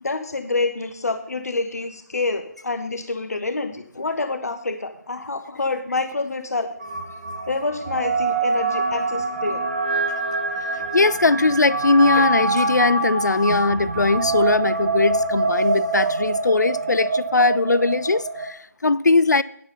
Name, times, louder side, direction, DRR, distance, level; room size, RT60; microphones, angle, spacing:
voice 1, 0.0-6.7 7.5-9.6, left 3 dB, 60° left, 1.0 m, -27 dB
sound 1, 6.8-18.5, right 3 dB, 30° right, 1.0 m, -25 dB
voice 2, 10.7-19.4, left 3 dB, 80° left, 0.4 m, -20 dB
9.7 x 7.0 x 5.4 m
figure-of-eight pair, 155°, 9 cm